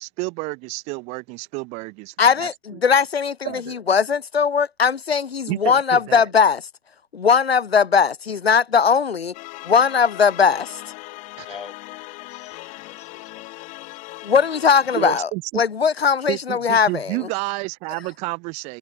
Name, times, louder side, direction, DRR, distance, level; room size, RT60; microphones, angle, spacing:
voice 1, 0.0-1.9 2.4-2.8 3.5-3.8 5.5-6.3 11.4-11.5 14.9-15.6 16.3-18.8, right 28 dB, 20° right, 1.8 m, -30 dB
voice 2, 2.2-6.6 7.1-9.3 9.7-10.8 14.2-17.2, left 6 dB, 80° left, 0.6 m, -19 dB
sound 1, 9.3-15.2, left 24 dB, 25° left, 6.9 m, -39 dB
voice 3, 11.4-11.7 12.2-14.0, left 6 dB, 60° left, 6.9 m, -44 dB
figure-of-eight pair, 125°, 30 cm